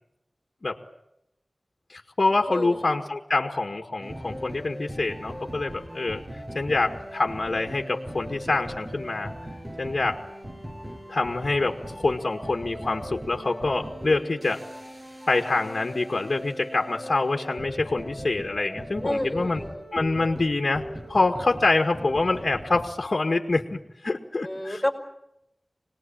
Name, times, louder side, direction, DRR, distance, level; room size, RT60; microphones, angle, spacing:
voice 1, 1.9-6.2 6.6-9.3 9.8-10.2 11.1-14.7 15.3-19.6 19.9-24.8, left 3 dB, 65° left, 3 dB, 1.9 m, -26 dB
voice 2, 2.5-2.9 19.0-19.9 24.4-24.9, left 1 dB, 15° left, 6 dB, 5.0 m, -30 dB
sound 1, 4.0-22.9, equal, 25° right, 6.5 m, -39 dB
26.5 x 20.0 x 8.9 m, 0.84 s
wide cardioid pair, 55°, 0 cm